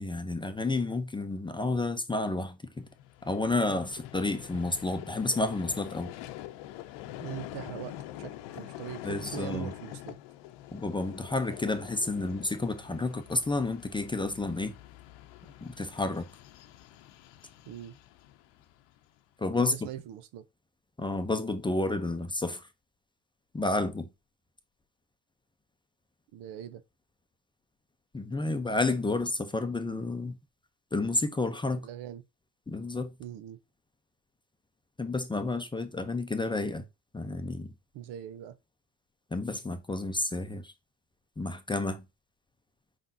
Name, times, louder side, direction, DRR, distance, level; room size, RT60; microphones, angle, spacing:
voice 1, 0.0-2.9 3.2-6.1 9.0-9.7 10.7-14.7 15.6-16.3 19.4-19.8 21.0-22.7 23.5-24.1 28.1-30.4 30.9-31.9 32.7-33.1 35.0-36.8 37.1-37.7 39.3-40.7 41.4-42.0, left 2 dB, 10° left, 0.6 m, -30 dB
Vehicle, 2.8-19.2, left 13 dB, 75° left, 0.8 m, -45 dB
voice 2, 7.2-10.2 17.7-17.9 19.6-20.4 26.3-26.8 31.8-32.2 33.2-33.6 37.9-38.5, right 12 dB, 65° right, 0.8 m, -41 dB
5.2 x 3.6 x 2.6 m
supercardioid pair, 95°, 44 cm